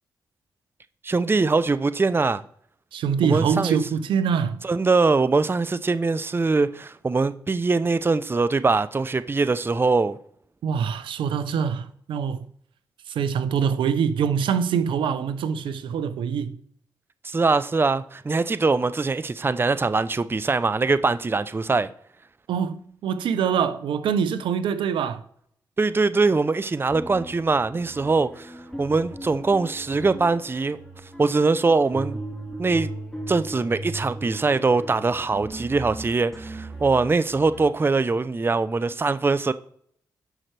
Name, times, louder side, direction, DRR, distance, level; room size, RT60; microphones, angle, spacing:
voice 1, 1.0-2.4 3.2-3.8 4.6-10.2 17.2-21.9 25.8-30.8 31.2-32.2 32.6-32.9 33.3-39.5, right 3 dB, 25° right, 0.5 m, -22 dB
voice 2, 2.9-4.6 10.6-12.5 13.1-16.6 22.5-25.2, right 7 dB, 80° right, 0.7 m, -24 dB
sound 1, 26.9-37.7, right 1 dB, 5° left, 3.8 m, -38 dB
11.0 x 5.7 x 3.3 m
supercardioid pair, 50°, 8 cm